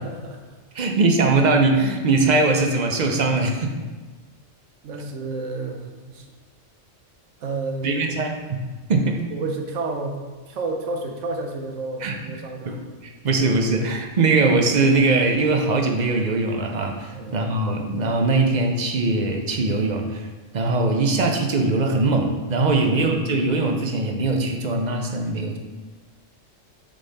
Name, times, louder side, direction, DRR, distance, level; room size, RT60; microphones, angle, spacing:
voice 1, 0.0-0.6 4.8-6.3 7.4-8.0 9.3-10.2 10.5-12.8 17.1-17.4 22.8-23.0, right 3 dB, 80° right, 3 dB, 1.2 m, -30 dB
voice 2, 0.7-3.7 7.8-8.6 8.9-9.2 12.0-12.2 12.6-12.7 13.0-20.3 20.5-25.6, right 3 dB, 45° right, 3 dB, 0.7 m, -21 dB
6.3 x 4.0 x 4.0 m, 1.3 s
omnidirectional pair, 1.3 m